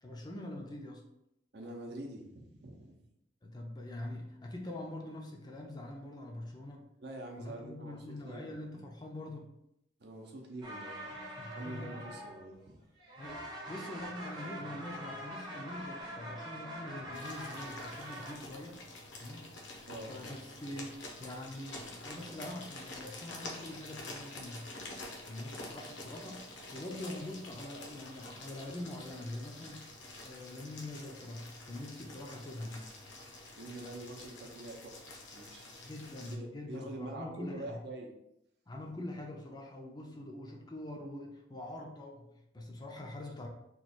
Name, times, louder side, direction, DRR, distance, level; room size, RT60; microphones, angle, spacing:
voice 1, 0.0-1.0 3.4-6.9 7.4-9.5 11.4-12.0 13.2-18.8 19.2-19.5 19.9-24.7 25.3-26.4 26.7-29.9 30.2-32.9 33.4-33.5 35.8-37.8 38.7-43.5, left 1 dB, 20° left, 0 dB, 0.5 m, -44 dB
voice 2, 1.5-3.1 7.0-8.6 10.0-11.2 11.5-12.8 19.8-20.2 33.6-35.6 36.2-38.1, right 1 dB, 60° right, 1 dB, 0.7 m, -45 dB
sound 1, 10.6-12.7 13.0-18.4, right 1 dB, 25° right, 0.7 m, -44 dB
sound 2, 17.1-36.3, left 2 dB, 70° left, 0.8 m, -48 dB
3.0 x 2.3 x 4.2 m, 0.82 s
head